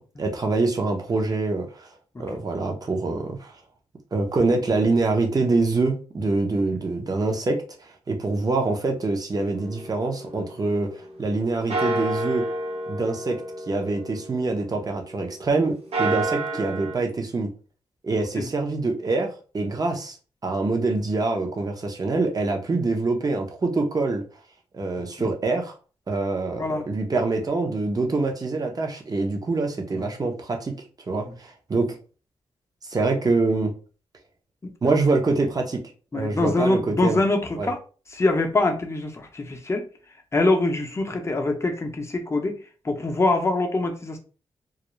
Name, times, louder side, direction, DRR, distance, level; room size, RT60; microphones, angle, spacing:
voice 1, 0.0-1.9 2.2-3.5 4.1-12.4 12.9-13.4 13.7-17.5 18.0-19.3 19.5-20.2 20.4-24.2 24.7-25.7 26.1-30.7 31.1-32.0 32.9-33.7 34.8-35.8 36.1-37.2 37.6-37.7, right 3 dB, 35° right, 0.7 m, -25 dB
sound 1, 9.5-11.3 11.7-15.2 15.7-16.9, right 2 dB, 70° right, 0.7 m, -30 dB
voice 2, 36.1-37.8 38.1-39.8 40.3-42.6 42.8-44.2, left 2 dB, 25° left, 0.6 m, -24 dB
2.3 x 2.0 x 3.0 m
cardioid pair, 65°, 11 cm